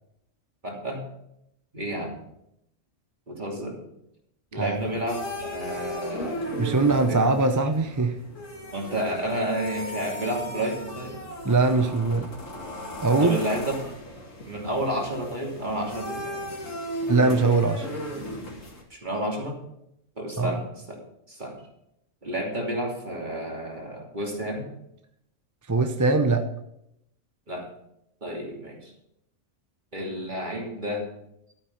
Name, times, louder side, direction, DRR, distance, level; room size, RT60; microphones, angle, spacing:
voice 1, 0.6-1.0 1.7-2.2 3.3-3.8 4.5-6.5 7.1-7.3 8.7-11.2 13.2-13.9 14.4-16.5 18.9-19.6 20.2-21.0 21.3-21.6 22.2-24.7 27.5-27.7 28.2-28.9 29.9-31.1, right 1 dB, 40° right, -1 dB, 3.0 m, -31 dB
voice 2, 4.5-4.9 6.6-8.1 11.4-12.3 13.0-13.4 17.1-17.9 20.4-20.6 25.7-26.4, right 3 dB, 20° right, 7 dB, 0.5 m, -22 dB
sound 1, 4.7-18.8, equal, 90° left, 2.6 m, -36 dB
12.0 x 8.9 x 5.8 m, 0.80 s
omnidirectional pair, 1.3 m